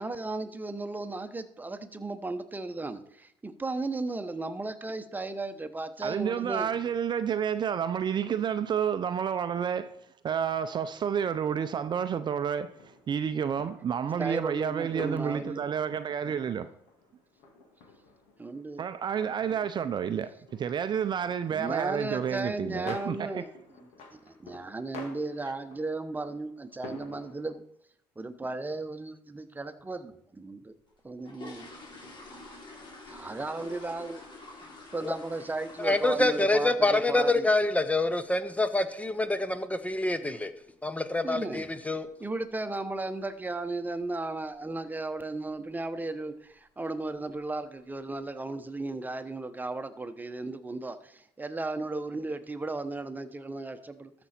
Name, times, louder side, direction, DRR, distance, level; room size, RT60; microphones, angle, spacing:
voice 1, 0.0-6.7 14.2-15.6 18.4-18.9 21.5-23.5 23.8-27.6 28.2-30.7 31.0-31.7 33.1-34.2 34.9-37.5 41.2-41.7 42.2-54.1, right 2 dB, 15° right, 1.0 m, -35 dB
voice 2, 6.0-9.9 10.2-12.8 13.1-16.7 18.8-23.4, right 8 dB, 40° right, 0.6 m, -30 dB
sound 1, 12.8-27.5, left 3 dB, 75° left, 2.2 m, -50 dB
sound 2, 30.9-36.8 37.1-37.4 37.7-37.8 38.2-38.3 38.7-38.9 39.2-39.3 39.9-40.0 40.2-40.4 40.9-41.2 41.5-41.6 42.0-42.2 42.5-42.6 43.0-43.1 43.7-44.0 44.4-44.7 45.1-45.2 45.6-45.7 46.4-46.6 47.0-47.5 47.9-48.0, left 2 dB, 45° left, 3.6 m, -48 dB
voice 3, 35.8-40.5 40.8-42.1, left 2 dB, 10° left, 0.8 m, -26 dB
13.5 x 6.1 x 4.3 m
supercardioid pair, 75°, 11 cm